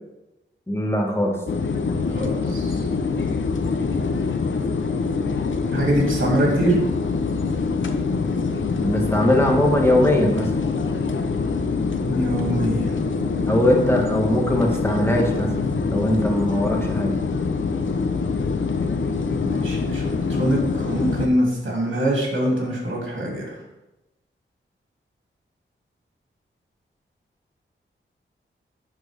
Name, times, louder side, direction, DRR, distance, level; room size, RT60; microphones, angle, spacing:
voice 1, 0.7-1.4 8.8-10.5 13.5-15.5 15.9-17.1, left 1 dB, 10° left, 0 dB, 1.5 m, -20 dB
sound 1, 1.5-21.3, left 4 dB, 65° left, 0.7 m, -24 dB
voice 2, 2.1-2.8 5.7-6.8 12.1-13.0 19.4-23.6, right 1 dB, 65° right, -2 dB, 2.6 m, -24 dB
10.5 x 4.5 x 3.4 m, 0.99 s
wide cardioid pair, 80°, 21 cm